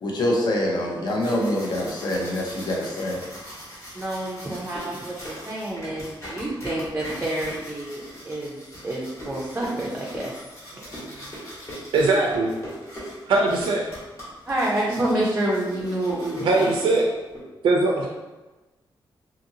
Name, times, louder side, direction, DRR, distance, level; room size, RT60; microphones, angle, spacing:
voice 1, 0.0-3.2, left 1 dB, 55° left, -2 dB, 0.6 m, -25 dB
sound 1, 1.1-17.4, equal, 40° left, 1.1 m, -40 dB
voice 2, 3.9-10.2 14.5-16.7, right 1 dB, 20° right, -4 dB, 0.4 m, -28 dB
voice 3, 11.9-12.5 13.3-13.8 16.4-17.1 17.6-18.1, right 3 dB, 80° right, -1 dB, 0.4 m, -20 dB
2.7 x 2.6 x 2.7 m, 1.1 s
wide cardioid pair, 155°, 9 cm